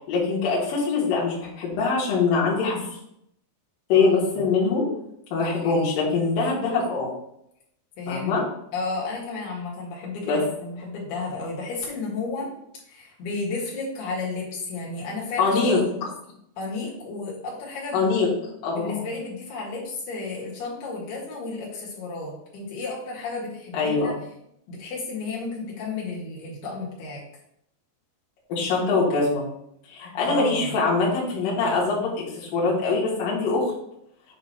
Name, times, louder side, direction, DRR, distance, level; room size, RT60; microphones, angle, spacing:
voice 1, 0.1-2.8 3.9-4.9 5.3-7.1 8.1-8.4 10.2-10.4 15.4-15.8 17.9-18.3 18.6-19.0 23.7-24.1 28.5-29.5 29.9-33.7, left 4 dB, 60° left, -6 dB, 3.1 m, -23 dB
voice 2, 8.0-8.4 8.7-12.5 12.9-15.6 16.0-16.1 16.6-18.0 18.7-24.1 24.7-27.2 30.2-30.7, left 3 dB, 80° left, -4 dB, 3.7 m, -32 dB
8.1 x 2.9 x 5.8 m, 0.75 s
omnidirectional pair, 4.6 m